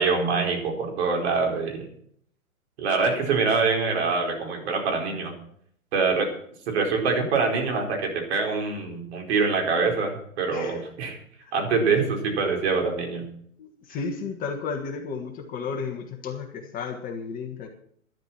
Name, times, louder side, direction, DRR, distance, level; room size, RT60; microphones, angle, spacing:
voice 1, 0.0-1.9 2.8-5.3 5.9-6.3 6.7-11.2 11.5-13.2, right 4 dB, 50° right, 2 dB, 4.9 m, -24 dB
voice 2, 10.5-10.8 11.4-11.5 13.6-17.7, left 5 dB, 20° left, 3 dB, 1.6 m, -33 dB
12.0 x 11.5 x 6.0 m, 0.64 s
hypercardioid pair, 135°, 42 cm